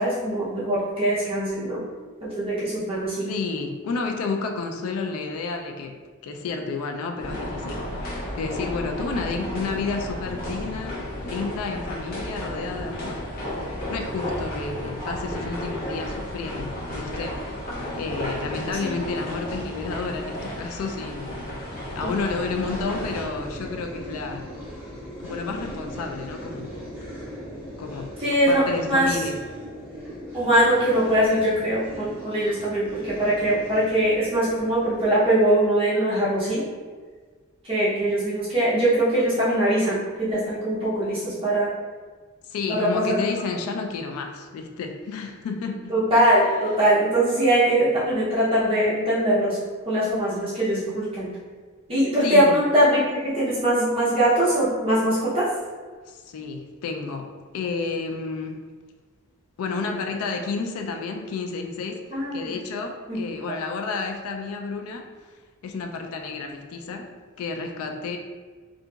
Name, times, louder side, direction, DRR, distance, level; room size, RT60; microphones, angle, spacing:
voice 1, 0.0-1.8 2.2-3.3 18.8-18.9 22.0-22.1 28.2-29.1 30.3-36.6 37.6-41.7 42.7-43.2 45.9-49.6 49.9-51.3 51.9-55.5 62.1-62.5 63.1-63.2, right 1 dB, 25° right, -9 dB, 0.6 m, -22 dB
voice 2, 3.3-6.0 6.2-13.3 13.9-17.4 18.0-21.4 22.0-24.5 25.2-26.7 27.8-28.1 28.5-29.4 42.5-45.9 52.2-52.6 56.1-57.3 57.5-58.6 59.6-62.0 62.3-65.1 65.6-67.1 67.4-68.2, left 4 dB, 80° left, 3 dB, 0.3 m, -31 dB
sound 1, 7.2-23.3, left 1 dB, 40° left, 0.6 m, -33 dB
sound 2, 21.7-35.6, equal, 10° right, 1.1 m, -39 dB
2.8 x 2.6 x 2.3 m, 1.5 s
head